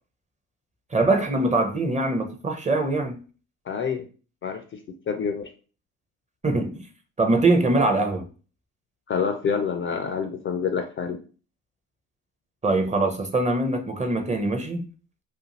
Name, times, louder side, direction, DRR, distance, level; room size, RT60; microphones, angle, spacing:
voice 1, 0.9-3.2 6.4-6.8 7.2-8.2 12.6-14.9, right 2 dB, 20° right, 0.5 m, -23 dB
voice 2, 3.7-4.1 4.4-5.5 9.1-11.2, left 6 dB, 30° left, 0.4 m, -27 dB
2.5 x 2.4 x 2.8 m
supercardioid pair, 70°, 40 cm